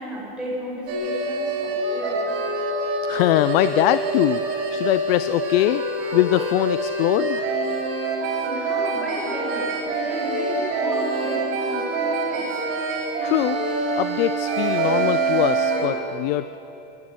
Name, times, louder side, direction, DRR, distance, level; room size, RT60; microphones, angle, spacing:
voice 1, 0.0-2.4 8.4-12.6, equal, 5° right, -7 dB, 6.8 m, -33 dB
sound 1, 0.9-15.9, right 3 dB, 50° right, 6.1 m, -25 dB
voice 2, 3.0-5.8 6.1-7.5 13.2-13.6 14.0-16.6, left 15 dB, 75° left, 13 dB, 0.6 m, -22 dB
27.0 x 12.0 x 9.7 m, 2.9 s
supercardioid pair, 160°, 30 cm